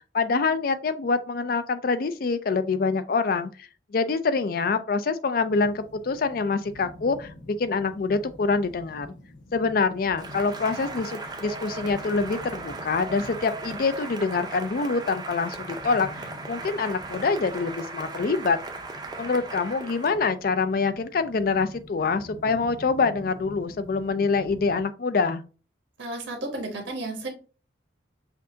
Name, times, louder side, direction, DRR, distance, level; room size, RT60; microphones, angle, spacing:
voice 1, 0.1-9.1 9.5-18.6 19.2-25.4, left 4 dB, 50° left, 0.4 m, -25 dB
sound 1, 5.5-24.8, left 1 dB, 85° left, 0.8 m, -46 dB
Cheering / Applause, 10.2-20.2, right 3 dB, 20° right, 0.5 m, -37 dB
voice 2, 26.0-27.3, right 2 dB, 80° right, 1.2 m, -33 dB
5.7 x 2.5 x 2.7 m
head